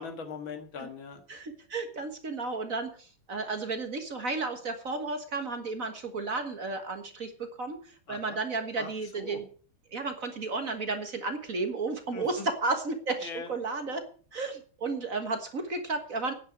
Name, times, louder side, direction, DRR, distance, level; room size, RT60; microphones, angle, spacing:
voice 1, 0.0-1.2 8.1-8.4 8.8-9.4 12.1-12.5 13.2-13.5, left 5 dB, 70° left, 7 dB, 2.6 m, -41 dB
voice 2, 1.3-7.8 8.1-9.4 9.9-14.0 14.3-16.3, right 3 dB, 45° right, 7 dB, 1.7 m, -33 dB
9.5 x 9.2 x 8.0 m, 0.43 s
omnidirectional pair, 2.3 m